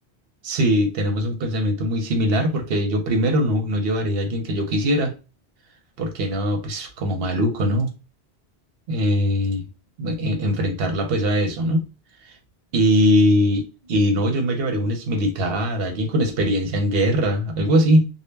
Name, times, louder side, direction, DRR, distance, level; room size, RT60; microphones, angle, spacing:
voice 1, 0.4-5.2 6.0-7.9 8.9-9.7 10.0-11.9 12.7-18.1, equal, 65° right, 0.9 m, -21 dB
2.2 x 2.1 x 3.2 m
omnidirectional pair, 1.1 m